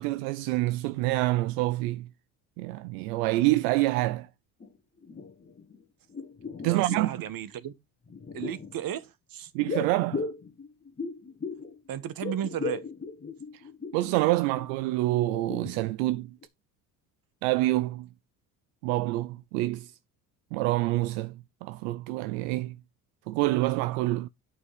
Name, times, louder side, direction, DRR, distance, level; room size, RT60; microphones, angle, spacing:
voice 1, 0.0-2.1 2.6-4.3 6.6-7.2 9.5-10.3 13.9-16.3 17.4-18.1 18.8-19.9 20.5-22.8 23.3-24.3, right 18 dB, 80° right, 0.6 m, -27 dB
sound 1, 4.6-4.7 5.0-5.8 6.1-7.3 8.1-8.7 9.7-11.8 12.0-14.1 14.5-14.7 15.1-16.1 16.4-16.5, left 4 dB, 20° left, 1.4 m, -37 dB
voice 2, 6.6-7.7 8.3-9.5 11.9-12.9, right 10 dB, 50° right, 1.3 m, -34 dB
8.4 x 5.4 x 4.8 m
hypercardioid pair, 70°, 44 cm